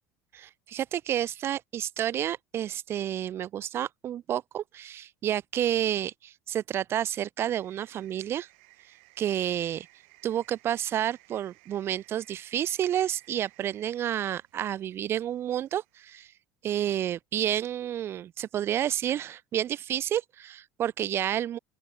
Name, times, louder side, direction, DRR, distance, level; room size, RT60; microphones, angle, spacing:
voice 1, 0.3-8.5 9.2-9.9 10.2-16.3 16.6-21.6, right 11 dB, 40° right, 1.0 m, -30 dB
sound 1, 7.5-16.3, right 30 dB, 90° right, 6.5 m, -59 dB
open air
cardioid pair, 130°, 6 cm